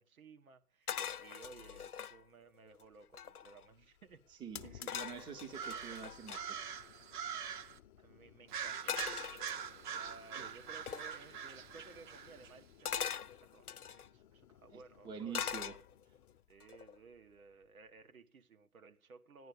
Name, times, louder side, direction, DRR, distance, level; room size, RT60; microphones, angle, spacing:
voice 1, 0.0-4.2 4.6-5.0 8.0-9.6 9.8-15.6 16.5-19.5, right 4 dB, 65° right, 1.7 m, -58 dB
sound 1, 0.9-2.2 2.8-2.9 3.0-3.7 4.9-6.4 8.9-10.0 10.9-11.1 12.9-14.1 15.3-16.2 16.6-17.0, left 8 dB, 80° left, 0.8 m, -41 dB
sound 2, 2.7-18.0, left 11 dB, 35° left, 0.9 m, -60 dB
voice 2, 4.4-6.6 10.4-10.5 14.7-15.8, right 6 dB, 10° right, 0.8 m, -47 dB
sound 3, 5.5-7.8 8.5-12.5, right 7 dB, 35° right, 1.0 m, -43 dB
15.5 x 10.5 x 6.8 m
figure-of-eight pair, 125°, 44 cm